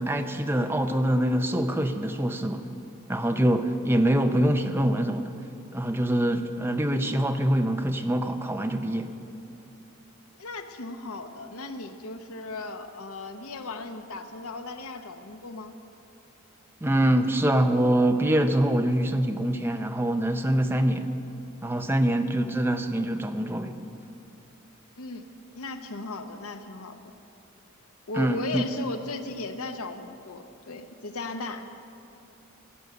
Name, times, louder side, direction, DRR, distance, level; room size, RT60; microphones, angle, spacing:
voice 1, 0.0-2.7 3.1-5.3 5.7-9.1 16.8-21.1 21.6-23.8 28.2-28.6, right 1 dB, 10° right, 6 dB, 0.5 m, -24 dB
voice 2, 10.4-15.7 25.0-25.3 25.5-27.0 28.1-31.7, left 3 dB, 90° left, 8 dB, 0.8 m, -36 dB
15.5 x 7.9 x 6.8 m, 2.8 s
head